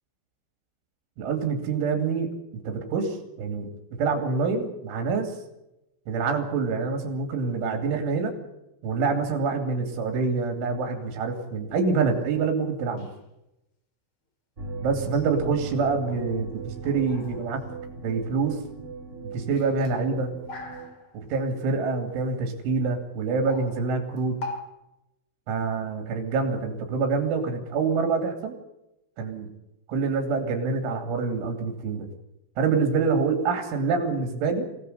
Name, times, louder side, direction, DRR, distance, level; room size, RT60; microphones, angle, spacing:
voice 1, 1.2-2.3 2.6-3.7 4.0-5.4 6.1-8.3 8.8-13.1 14.8-17.6 18.0-18.6 19.3-20.3 21.1-24.4 25.5-28.6 29.2-29.5 29.9-32.1 32.6-34.7, right 4 dB, 85° right, 4 dB, 4.9 m, -26 dB
sound 1, 10.9-11.2 13.0-13.2 15.1-15.5 16.0-16.5 16.8-18.6 19.3-21.4 22.2-22.3 23.2-24.6, left 2 dB, 35° left, 2.3 m, -42 dB
sound 2, 14.6-20.9, right 4 dB, 25° right, 1.8 m, -38 dB
25.0 x 17.0 x 8.1 m, 0.92 s
omnidirectional pair, 5.4 m